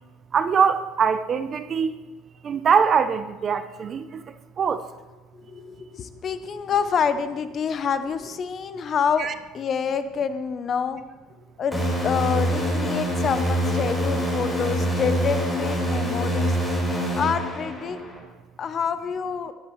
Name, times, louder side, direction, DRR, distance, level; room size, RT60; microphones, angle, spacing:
voice 1, 0.3-1.9 2.4-4.2 4.6-4.8 9.2-9.3, right 6 dB, 25° right, 11 dB, 0.4 m, -22 dB
voice 2, 5.3-9.3 9.5-11.0 11.6-16.6 17.2-18.0 18.6-19.5, left 6 dB, 30° left, 11 dB, 0.6 m, -27 dB
sound 1, 11.7-18.2, equal, 5° left, 4.1 m, -25 dB
17.5 x 12.0 x 3.1 m, 1.2 s
cardioid pair, 170°, 0 cm